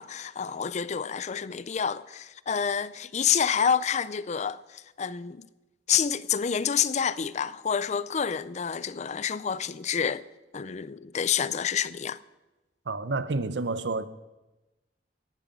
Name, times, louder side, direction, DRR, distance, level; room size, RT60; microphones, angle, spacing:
voice 1, 0.0-5.5 5.9-10.2 10.5-12.2, left 7 dB, 40° left, 0.5 m, -28 dB
voice 2, 12.9-14.1, right 3 dB, 80° right, 0.8 m, -29 dB
17.5 x 11.0 x 5.3 m
head